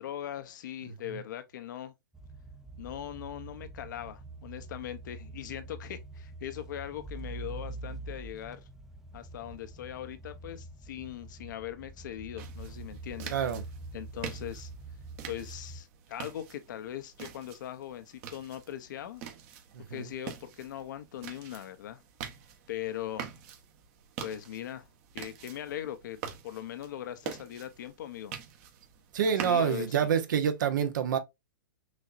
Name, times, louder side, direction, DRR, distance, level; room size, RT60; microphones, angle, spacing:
voice 1, 0.0-1.9 2.8-8.7 9.1-13.3 13.9-14.7 15.3-19.2 19.8-22.0 22.7-23.3 24.2-24.9 25.1-28.3 29.3-30.2, left 11 dB, 65° left, 0.8 m, -40 dB
sound 1, 2.1-15.8, right 2 dB, 5° right, 0.5 m, -45 dB
sound 2, 12.4-30.2, right 8 dB, 45° right, 1.1 m, -45 dB
voice 2, 13.3-13.6 19.7-20.1 29.1-31.2, right 7 dB, 65° right, 0.9 m, -27 dB
6.2 x 2.7 x 2.5 m
hypercardioid pair, 125°, 11 cm